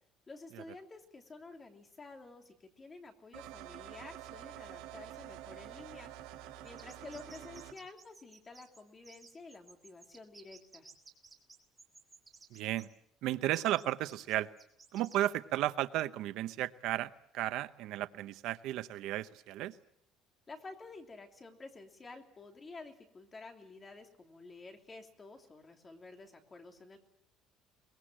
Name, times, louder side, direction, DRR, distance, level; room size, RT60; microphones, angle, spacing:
voice 1, 0.3-6.1 6.6-10.9 20.5-27.0, left 3 dB, 20° left, 4 dB, 3.1 m, -51 dB
sound 1, 3.3-7.7, right 13 dB, 80° right, 3.7 m, -48 dB
sound 2, 6.6-12.9 13.5-15.3, right 4 dB, 15° right, 3.5 m, -56 dB
voice 2, 12.5-12.9 13.2-14.5 14.9-19.8, right 14 dB, 65° right, 12 dB, 0.9 m, -34 dB
23.0 x 21.5 x 7.6 m, 0.71 s
cardioid pair, 150°, 0 cm